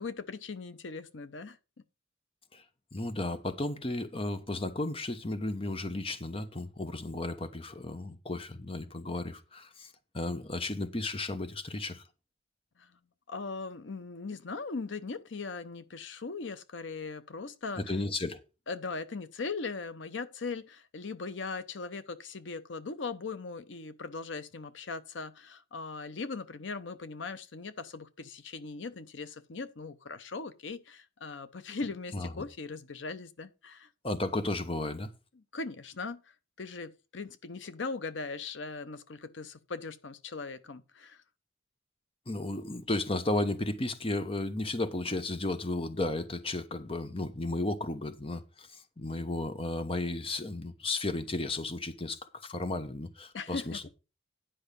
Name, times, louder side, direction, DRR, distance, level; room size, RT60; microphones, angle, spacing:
voice 1, 0.0-1.6 12.8-12.9 13.3-17.8 18.7-33.9 35.4-41.2 53.3-53.8, left 4 dB, 75° left, 0.7 m, -39 dB
voice 2, 2.9-12.0 17.8-18.4 32.1-32.4 34.0-35.1 42.3-53.9, left 2 dB, 30° left, 1.0 m, -34 dB
10.0 x 5.6 x 5.3 m
head